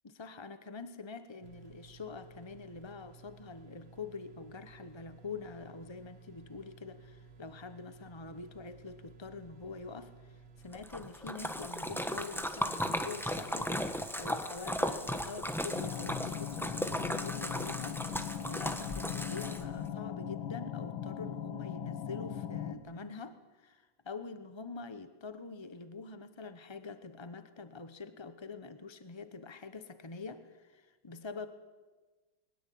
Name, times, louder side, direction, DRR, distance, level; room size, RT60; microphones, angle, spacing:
voice 1, 0.0-31.5, left 4 dB, 40° left, 10 dB, 0.4 m, -45 dB
sound 1, 1.4-10.7, right 5 dB, 50° right, 1.5 m, -56 dB
Splash splatter, 10.7-19.8, equal, ahead, 0.8 m, -36 dB
sound 2, 15.7-22.8, left 9 dB, 80° left, 2.2 m, -39 dB
21.0 x 20.0 x 8.5 m, 1.3 s
omnidirectional pair, 2.2 m